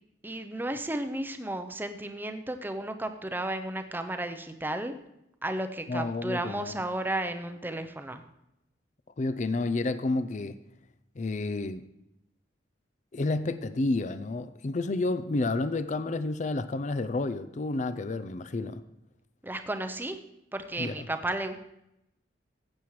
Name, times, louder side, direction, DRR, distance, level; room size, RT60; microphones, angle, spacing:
voice 1, 0.2-4.9 5.4-8.2 19.4-20.2 20.5-21.6, right 1 dB, 10° right, 7 dB, 0.6 m, -33 dB
voice 2, 5.9-6.8 9.2-10.5 11.2-11.8 13.1-18.8 20.8-21.1, left 2 dB, 40° left, 12 dB, 0.4 m, -30 dB
15.0 x 8.6 x 3.2 m, 0.85 s
head